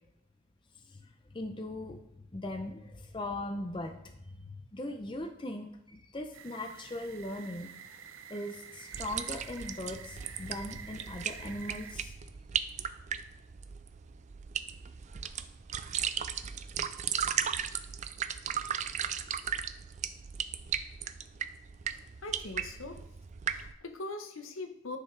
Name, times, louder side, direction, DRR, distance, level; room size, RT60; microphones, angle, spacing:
voice 1, 0.9-2.0 2.3-7.7 8.3-12.2, left 1 dB, 20° left, 5 dB, 0.5 m, -39 dB
sound 1, 6.3-12.0, right 7 dB, 70° right, 0.7 m, -49 dB
sound 2, 8.9-23.7, right 8 dB, 35° right, 0.3 m, -36 dB
voice 2, 22.2-23.0 23.5-25.0, left 2 dB, 75° left, 6 dB, 0.9 m, -41 dB
9.9 x 5.6 x 3.3 m, 0.82 s
head